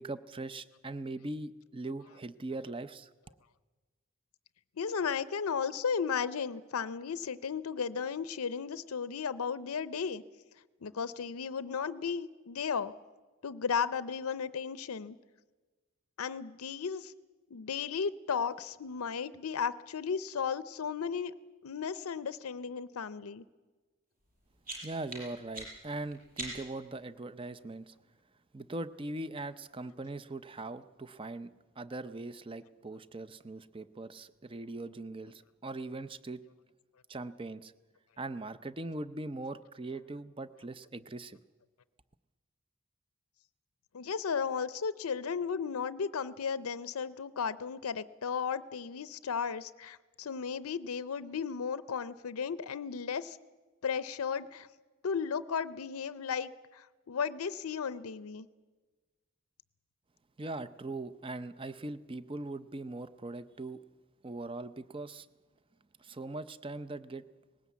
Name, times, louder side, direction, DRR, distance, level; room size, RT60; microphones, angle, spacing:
voice 1, 0.0-3.1 24.8-27.9 28.5-36.4 37.1-37.7 38.2-41.4 60.4-63.8 64.2-65.3 66.0-67.2, right 2 dB, 25° right, 14 dB, 0.5 m, -41 dB
voice 2, 4.8-10.2 10.8-12.9 13.4-15.2 16.2-17.1 17.5-21.3 21.6-23.4 43.9-53.4 53.8-54.7 55.0-58.5, left 6 dB, 90° left, 15 dB, 0.6 m, -35 dB
sound 1, 24.2-26.9, right 2 dB, 40° right, 5.9 m, -44 dB
19.5 x 17.0 x 8.3 m, 1.3 s
head